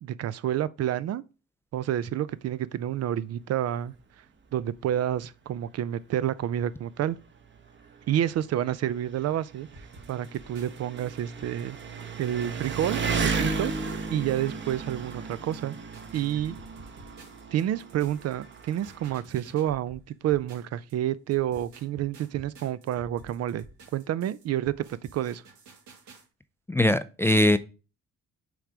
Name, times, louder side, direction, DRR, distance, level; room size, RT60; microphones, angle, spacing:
voice 1, 0.0-1.2 1.7-3.9 4.5-7.2 8.1-9.7 10.1-11.8 12.2-15.8 16.1-16.5 17.5-23.6 23.9-24.8 25.1-25.4, right 11 dB, 55° right, 0.4 m, -29 dB
Engine, 4.6-4.7 5.1-5.2 6.1-6.2 6.4-19.2, right 4 dB, 40° right, 0.9 m, -35 dB
sound 1, 9.7-20.9 21.3-26.2, right 2 dB, 75° right, 1.7 m, -52 dB
voice 2, 26.7-27.6, left 1 dB, 10° left, 0.3 m, -21 dB
6.2 x 3.4 x 4.9 m
cardioid pair, 90°, 30 cm